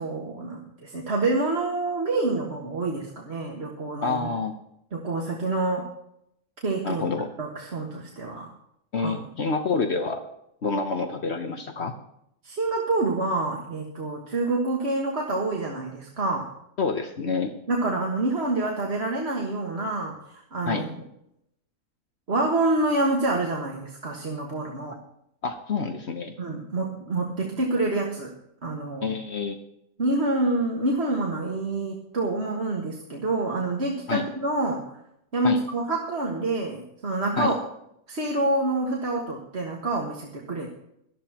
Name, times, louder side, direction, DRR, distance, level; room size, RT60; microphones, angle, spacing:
voice 1, 0.0-4.3 4.9-5.9 6.6-7.0 7.4-8.5 9.0-9.1 12.4-16.5 17.7-20.8 22.3-25.0 26.4-28.3 28.6-29.2 30.0-34.8 35.3-37.5 38.1-40.7, right 2 dB, 50° right, -1 dB, 1.9 m, -27 dB
voice 2, 4.0-4.5 6.8-7.3 8.9-10.2 10.6-11.9 16.8-17.5 20.7-20.9 25.4-26.3 29.0-29.6 34.1-34.3 35.4-35.6 37.4-37.5, left 4 dB, 55° left, 6 dB, 1.2 m, -27 dB
18.5 x 13.0 x 2.9 m, 0.77 s
omnidirectional pair, 1.4 m